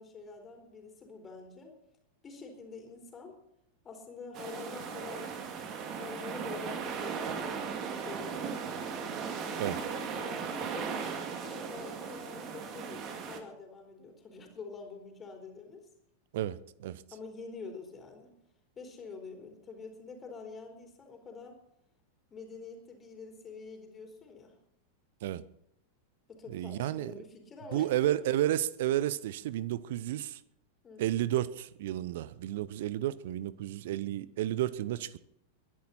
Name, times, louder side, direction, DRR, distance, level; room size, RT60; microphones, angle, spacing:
voice 1, 0.0-1.8 2.2-3.3 3.8-5.3 5.9-7.3 7.6-8.9 9.4-11.0 11.4-15.8 17.1-18.3 18.8-21.6 22.3-24.5 26.3-27.9 30.8-31.2, left 4 dB, 20° left, 4.3 m, -46 dB
sound 1, 4.3-13.4, right 6 dB, 35° right, 2.5 m, -37 dB
voice 2, 16.3-17.0 25.2-25.4 26.5-27.1 27.7-30.4 31.0-35.2, right 13 dB, 55° right, 0.8 m, -32 dB
22.0 x 11.0 x 4.3 m
figure-of-eight pair, 90°, 0 cm